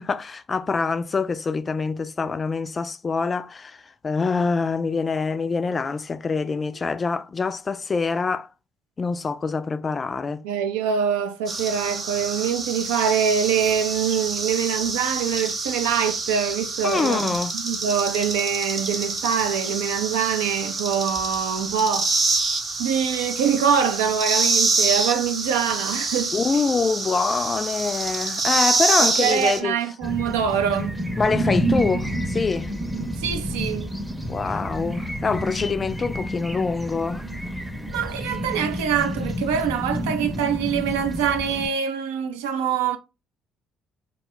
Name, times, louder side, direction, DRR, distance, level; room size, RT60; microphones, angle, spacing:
voice 1, 0.0-8.5 9.0-10.4 16.8-17.5 26.3-29.8 31.2-32.7 34.3-37.3, left 4 dB, 35° left, 0.3 m, -25 dB
voice 2, 10.4-22.1 22.8-26.6 29.0-31.0 33.2-33.9 37.9-43.0, right 8 dB, 75° right, 0.3 m, -24 dB
sound 1, 11.5-29.6, right 3 dB, 45° right, 0.7 m, -26 dB
sound 2, 30.0-41.7, equal, 10° right, 0.6 m, -29 dB
2.2 x 2.0 x 3.7 m
figure-of-eight pair, 50°, 0 cm